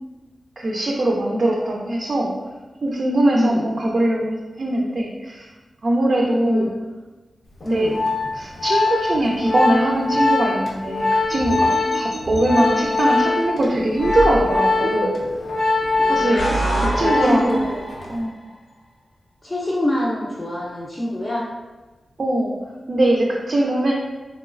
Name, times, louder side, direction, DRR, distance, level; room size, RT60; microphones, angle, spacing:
voice 1, 0.6-2.3 2.8-5.5 5.8-6.7 7.7-7.9 8.3-15.1 16.1-16.5 17.0-17.5 18.1-18.4 22.2-22.5 22.9-23.9, right 1 dB, 50° right, -2 dB, 0.4 m, -21 dB
voice 2, 3.3-3.6 6.4-6.7 7.6-7.9 16.0-16.9 17.2-17.8 19.4-21.5, left 1 dB, 25° left, -7 dB, 0.5 m, -24 dB
Organ, 7.6-17.6 17.9-18.2, left 3 dB, 60° left, 0.7 m, -22 dB
sound 1, 11.3-13.0 13.9-15.5 16.1-18.3, right 1 dB, 85° left, 1.2 m, -27 dB
3.1 x 2.9 x 2.4 m, 1.2 s
wide cardioid pair, 80°, 0 cm